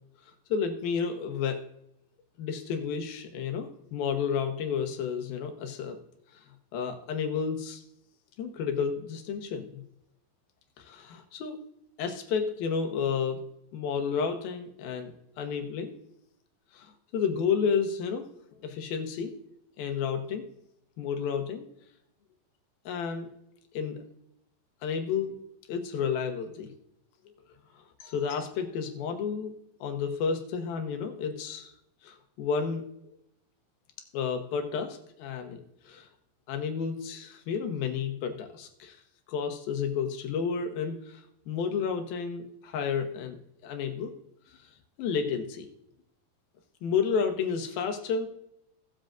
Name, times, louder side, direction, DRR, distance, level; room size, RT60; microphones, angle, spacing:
voice 1, 0.5-1.6 2.4-6.0 6.3-6.4 6.7-7.8 8.4-9.8 10.8-11.6 12.0-13.4 13.7-15.1 15.4-15.9 16.7-18.3 18.6-19.4 19.8-20.4 21.0-21.6 22.9-23.3 23.7-24.0 24.8-25.4 25.7-26.7 27.3-27.4 28.0-29.5 29.8-31.7 32.0-32.8 34.1-35.6 35.9-36.1 36.5-39.0 39.3-43.4 43.6-44.1 45.0-45.7 46.8-48.3, left 6 dB, 85° left, 5 dB, 3.0 m, -31 dB
18.0 x 7.6 x 2.5 m, 0.79 s
omnidirectional pair, 4.1 m